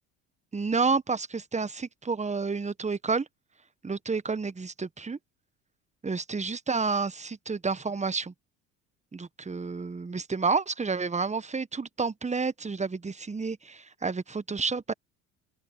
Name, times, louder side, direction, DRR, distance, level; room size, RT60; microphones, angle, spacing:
voice 1, 0.5-3.3 3.8-5.2 6.0-8.3 9.1-14.9, right 4 dB, 15° right, 1.4 m, -30 dB
open air
hypercardioid pair, 60°, 41 cm